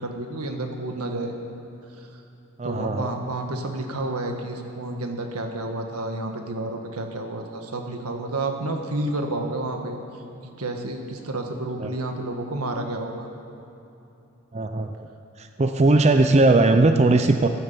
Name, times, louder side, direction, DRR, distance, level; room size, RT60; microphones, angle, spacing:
voice 1, 0.0-1.4 2.6-10.0 10.4-13.3, right 2 dB, 85° right, 4 dB, 1.7 m, -30 dB
voice 2, 2.6-3.1 11.8-11.9 14.5-15.1 15.4-17.5, right 2 dB, 30° right, 7 dB, 0.5 m, -19 dB
15.0 x 10.5 x 7.0 m, 3.0 s
head